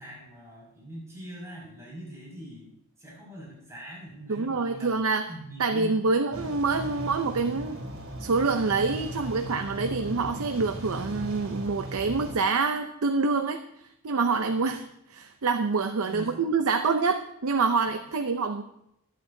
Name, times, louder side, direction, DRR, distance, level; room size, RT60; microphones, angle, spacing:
voice 1, 0.0-2.7 3.0-6.0 14.5-14.7 16.0-16.5 17.9-18.0, right 1 dB, 15° right, -6 dB, 5.9 m, -43 dB
voice 2, 4.3-5.3 5.6-7.8 8.2-14.8 15.1-18.6, right 4 dB, 90° right, 6 dB, 0.6 m, -26 dB
sound 1, 6.3-12.3, equal, 70° right, 3.3 m, -37 dB
23.5 x 8.4 x 2.7 m, 0.77 s
head